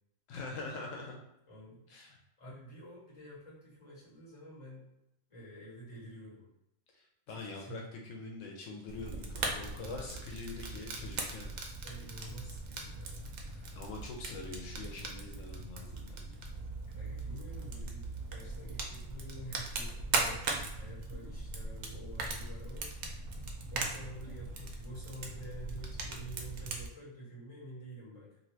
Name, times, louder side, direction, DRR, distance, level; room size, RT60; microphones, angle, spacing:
voice 1, 0.3-1.2 1.9-2.2 7.3-11.5 13.8-16.4, left 3 dB, 85° left, 0 dB, 1.0 m, -44 dB
voice 2, 1.5-1.8 2.4-4.9 5.3-6.5 7.3-7.8 11.8-13.8 16.9-23.2 23.7-28.4, right 1 dB, 25° left, -7 dB, 1.5 m, -49 dB
Fire, 8.9-26.9, right 3 dB, 85° right, 1.0 m, -39 dB
2.7 x 2.6 x 3.1 m, 0.84 s
omnidirectional pair, 1.3 m